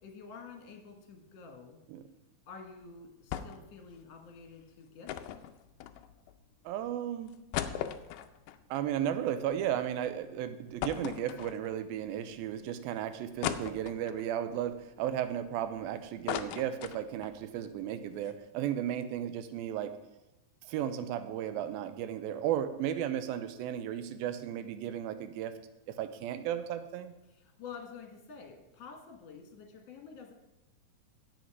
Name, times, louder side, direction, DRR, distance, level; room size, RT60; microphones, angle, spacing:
voice 1, 0.0-1.8 2.5-5.1 27.3-30.3, left 5 dB, 55° left, 2 dB, 2.1 m, -49 dB
sound 1, 3.3-3.7 4.0-4.1 5.1-6.3 6.9-7.0 7.3-9.7 10.1-10.2 10.8-11.9 12.5-12.6 13.4-14.3 14.8-17.4 17.7-17.8 18.1-18.3, left 11 dB, 85° left, 1.8 m, -38 dB
voice 2, 6.7-7.3 8.7-19.9 20.6-25.5 25.9-27.1, right 10 dB, 85° right, 11 dB, 2.4 m, -34 dB
11.0 x 8.0 x 4.7 m, 0.96 s
omnidirectional pair, 4.3 m